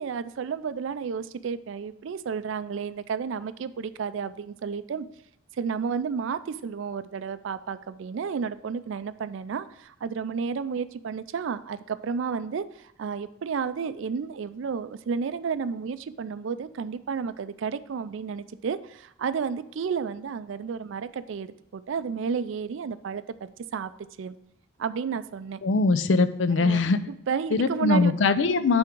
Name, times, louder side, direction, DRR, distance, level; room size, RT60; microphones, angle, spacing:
voice 1, 0.0-5.1 5.6-23.9 24.2-24.3 24.8-25.6 26.6-26.8 27.1-28.1 28.5-28.6, right 6 dB, 70° right, 14 dB, 0.4 m, -32 dB
voice 2, 25.6-27.0 27.5-28.8, left 3 dB, 65° left, 12 dB, 0.4 m, -22 dB
9.7 x 3.5 x 4.5 m, 0.76 s
head